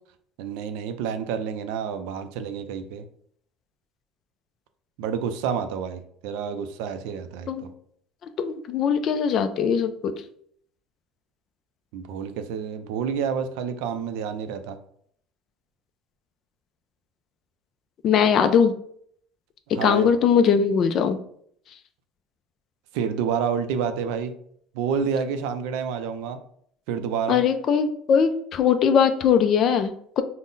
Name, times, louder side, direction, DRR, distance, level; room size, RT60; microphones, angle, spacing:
voice 1, 0.4-3.1 5.0-7.7 11.9-14.8 19.7-20.1 22.9-24.3 24.7-26.4 26.9-27.4, right 7 dB, 80° right, 9 dB, 0.4 m, -29 dB
voice 2, 8.4-10.1 18.0-18.7 19.8-21.2 27.3-30.2, left 7 dB, 40° left, 9 dB, 0.3 m, -20 dB
3.9 x 2.0 x 3.7 m, 0.64 s
cardioid pair, 160°, 0 cm